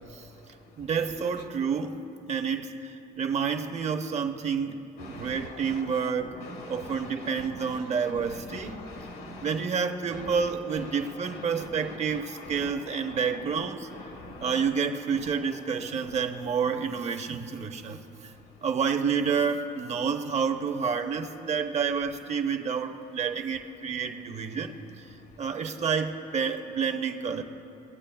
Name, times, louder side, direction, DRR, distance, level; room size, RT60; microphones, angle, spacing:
voice 1, 0.8-2.0 2.3-4.8 5.1-6.3 6.7-8.8 9.4-13.9 14.4-18.3 18.6-24.8 25.4-27.4, right 6 dB, 40° right, 6 dB, 0.7 m, -29 dB
voice 2, 5.0-9.6 10.1-10.3 11.0-14.7, left 2 dB, 70° left, 4 dB, 1.4 m, -43 dB
22.0 x 8.2 x 2.3 m, 2.8 s
cardioid pair, 110°, 17 cm